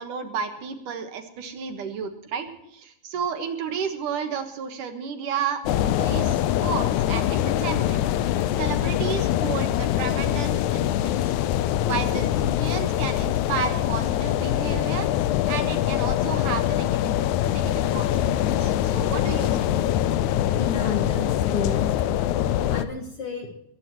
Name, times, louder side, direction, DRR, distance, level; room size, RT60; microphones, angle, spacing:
voice 1, 0.0-11.3 11.8-15.1 15.5-17.1 17.4-19.9, right 6 dB, 65° right, 6 dB, 2.8 m, -32 dB
sound 1, 5.7-22.9, left 12 dB, 80° left, 1.7 m, -24 dB
voice 2, 20.6-21.9 22.7-23.5, left 5 dB, 50° left, 3 dB, 2.2 m, -31 dB
22.0 x 17.5 x 3.0 m, 0.79 s
omnidirectional pair, 4.2 m